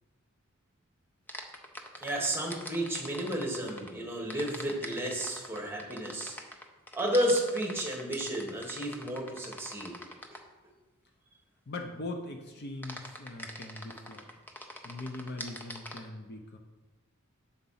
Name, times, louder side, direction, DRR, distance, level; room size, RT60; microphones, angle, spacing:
sound 1, 1.3-3.9 4.3-10.5 12.8-16.0, left 1 dB, 10° left, 0.5 m, -43 dB
voice 1, 2.0-6.4 6.9-9.9, right 1 dB, 10° right, -1 dB, 1.3 m, -32 dB
voice 2, 11.7-14.3 14.8-16.6, left 2 dB, 50° left, 4 dB, 0.7 m, -41 dB
7.2 x 4.0 x 5.6 m, 1.2 s
head